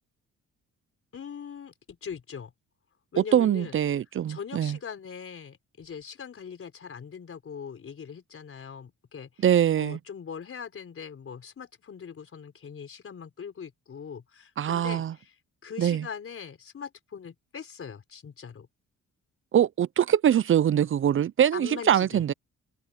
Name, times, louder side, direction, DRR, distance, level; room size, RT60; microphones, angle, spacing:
voice 1, 1.1-2.5 3.1-3.7 4.3-9.5 9.8-15.3 15.6-18.7 21.5-22.2, left 7 dB, 45° left, 4.6 m, -41 dB
voice 2, 3.2-4.8 9.4-10.0 14.6-15.1 15.8-16.1 19.5-22.3, right 10 dB, 45° right, 0.5 m, -23 dB
cardioid pair, 90°, 30 cm